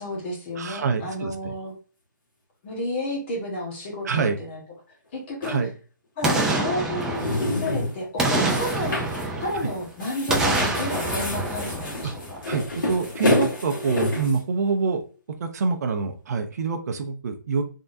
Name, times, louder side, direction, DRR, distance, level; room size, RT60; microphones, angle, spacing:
voice 1, 0.0-1.7 2.6-4.6 5.1-5.6 6.2-9.0 9.4-12.4, left 1 dB, 35° left, 0 dB, 1.4 m, -31 dB
voice 2, 0.6-1.5 4.0-4.4 5.4-5.7 12.5-15.0 15.4-17.6, right 5 dB, 55° right, 6 dB, 0.6 m, -26 dB
sound 1, 5.4-5.6 7.0-8.0 8.4-9.2 9.6-9.7 10.0-14.4, left 1 dB, 80° left, 1.8 m, -28 dB
Boom, 6.2-7.7 8.2-9.8 10.3-12.5 12.9-13.0, right 2 dB, 5° right, 0.5 m, -26 dB
3.6 x 3.3 x 2.7 m, 0.37 s
hypercardioid pair, 155°, 11 cm